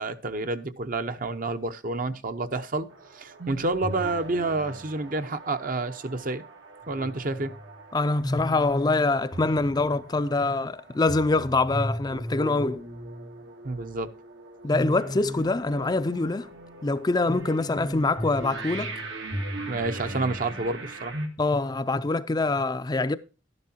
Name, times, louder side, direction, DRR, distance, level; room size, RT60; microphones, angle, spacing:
voice 1, 0.0-2.9 3.1-6.4 6.9-7.5 13.6-14.1 19.7-21.1, right 2 dB, 50° right, 0.8 m, -29 dB
sound 1, 2.9-21.3, equal, 90° right, 2.2 m, -37 dB
voice 2, 7.9-12.8 14.6-16.5 16.8-18.9 21.4-23.2, left 3 dB, 20° left, 0.4 m, -25 dB
12.5 x 11.0 x 2.8 m
head